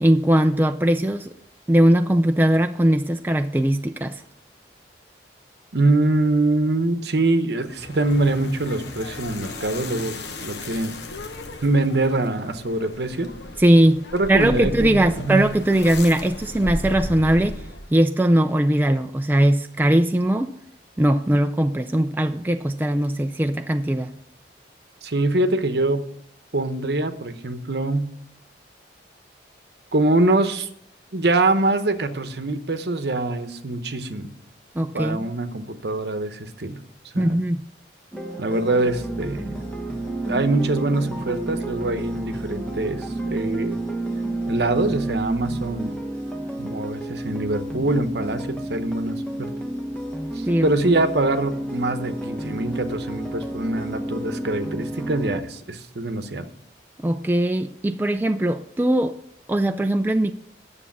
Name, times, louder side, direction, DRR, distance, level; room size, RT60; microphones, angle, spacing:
voice 1, 0.0-1.3 1.7-4.2 13.6-14.0 14.3-17.6 17.9-20.5 21.0-24.1 34.8-35.3 37.2-37.6 50.4-50.9 57.0-59.1 59.5-60.3, right 1 dB, 10° right, 0.3 m, -20 dB
voice 2, 5.7-11.0 11.6-13.3 14.1-15.5 25.0-26.0 26.5-28.1 29.9-30.7 31.1-34.3 34.9-36.8 37.1-37.4 38.4-39.6 40.3-43.8 44.5-46.0 46.6-49.2 50.3-56.5, right 2 dB, 65° right, 0.9 m, -24 dB
sound 1, 7.6-18.0, left 2 dB, 70° left, 1.0 m, -35 dB
sound 2, 38.1-55.4, right 1 dB, 5° left, 1.0 m, -30 dB
9.8 x 6.9 x 7.2 m
head